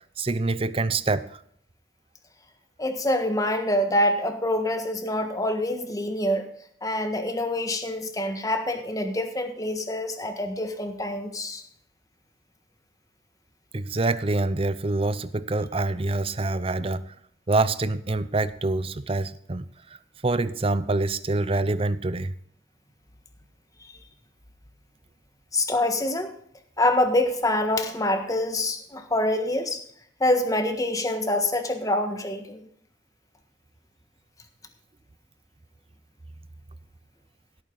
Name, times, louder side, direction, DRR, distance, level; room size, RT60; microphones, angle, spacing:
voice 1, 0.2-1.4 13.7-17.1 17.5-19.7 20.2-22.3, right 2 dB, 30° right, 0.6 m, -26 dB
voice 2, 2.8-6.5 6.8-11.6 23.8-23.9 25.5-26.3 26.8-29.8 30.2-32.6, left 1 dB, 20° left, 1.5 m, -26 dB
16.0 x 9.1 x 3.9 m
head